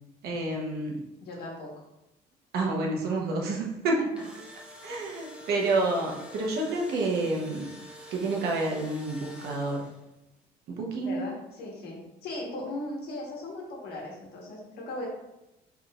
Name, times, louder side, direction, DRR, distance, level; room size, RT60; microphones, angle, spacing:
voice 1, 0.2-1.0 2.5-4.0 4.8-7.7 8.1-9.9 10.7-11.2, right 2 dB, 70° right, -1 dB, 1.0 m, -29 dB
voice 2, 1.2-1.7 3.5-3.6 4.0-4.5 11.0-15.1, left 1 dB, 70° left, -2 dB, 1.4 m, -38 dB
Engine / Drill, 3.9-10.1, equal, 5° right, 0.8 m, -47 dB
4.6 x 3.6 x 2.4 m, 0.91 s
cardioid pair, 110°, 17 cm